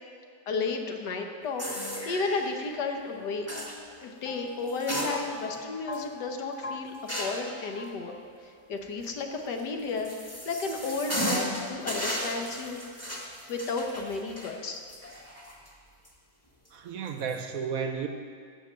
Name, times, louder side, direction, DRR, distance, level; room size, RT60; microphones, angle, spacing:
voice 1, 0.5-3.5 4.0-10.1 10.4-12.8 13.5-14.8, left 4 dB, 75° left, 4 dB, 1.6 m, -33 dB
sound 1, 1.6-2.5 3.5-3.8 4.7-5.6 5.9-6.0 7.1-7.5 9.6-15.7 16.0-16.1 17.1-17.4, equal, 10° left, 1.5 m, -34 dB
sound 2, 1.7-8.7, left 5 dB, 45° left, 0.6 m, -44 dB
voice 2, 16.7-18.1, right 6 dB, 65° right, 6 dB, 1.0 m, -32 dB
15.5 x 5.3 x 7.4 m, 2.3 s
omnidirectional pair, 1.8 m